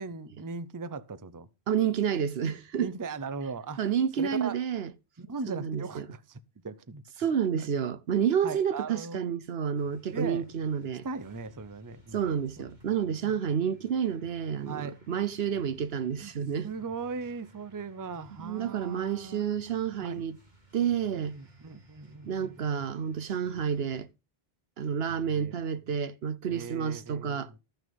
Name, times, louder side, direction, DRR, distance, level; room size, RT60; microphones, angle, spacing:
voice 1, 0.0-1.5 2.8-3.8 4.2-4.6 5.2-6.4 6.6-7.0 7.5-7.8 8.4-9.2 10.1-10.5 11.0-12.7 13.2-13.3 14.6-15.0 16.2-16.3 16.6-19.7 20.0-20.2 21.2-22.8 25.1-25.5 26.5-27.6, right 4 dB, 20° right, 0.6 m, -39 dB
voice 2, 1.7-2.9 3.8-4.9 5.5-6.0 7.2-11.1 12.1-16.7 18.4-20.4 20.7-21.4 22.2-24.1 24.8-27.5, right 8 dB, 70° right, 1.0 m, -29 dB
sound 1, 9.7-24.1, equal, 45° right, 2.7 m, -58 dB
14.0 x 6.4 x 5.4 m
omnidirectional pair, 1.1 m